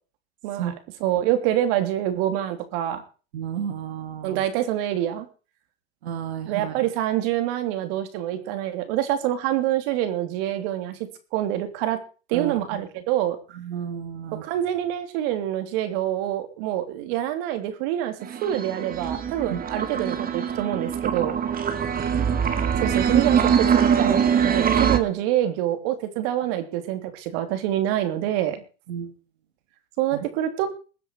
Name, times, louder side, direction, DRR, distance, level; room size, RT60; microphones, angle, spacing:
voice 1, 1.0-3.0 4.2-5.3 6.5-11.0 11.3-12.0 12.3-13.4 14.4-21.4 22.8-28.6 30.0-30.7, right 12 dB, 65° right, 9 dB, 3.2 m, -26 dB
voice 2, 3.3-4.4 6.0-6.8 12.3-12.9 13.5-14.5 19.5-19.6 21.7-21.9 28.9-29.2 30.1-30.3, right 8 dB, 85° right, 8 dB, 2.7 m, -32 dB
sound 1, 18.2-25.0, right 7 dB, 25° right, 2.2 m, -23 dB
21.5 x 7.9 x 4.7 m, 0.36 s
hypercardioid pair, 110°, 32 cm